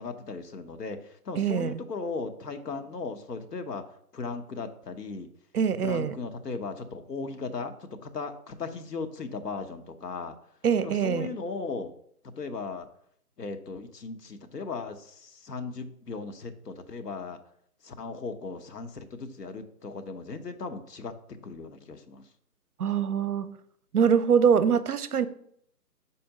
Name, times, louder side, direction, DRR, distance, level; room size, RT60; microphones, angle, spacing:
voice 1, 0.0-3.8 4.1-5.3 5.8-10.3 10.8-11.9 12.4-12.9 13.4-17.4 17.8-21.1 21.4-22.2, left 4 dB, 80° left, 1.0 m, -37 dB
voice 2, 1.4-1.8 5.5-6.2 10.6-11.3 22.8-23.6 23.9-25.3, right 7 dB, 70° right, 0.6 m, -24 dB
5.5 x 4.3 x 5.0 m
hypercardioid pair, 170°, 48 cm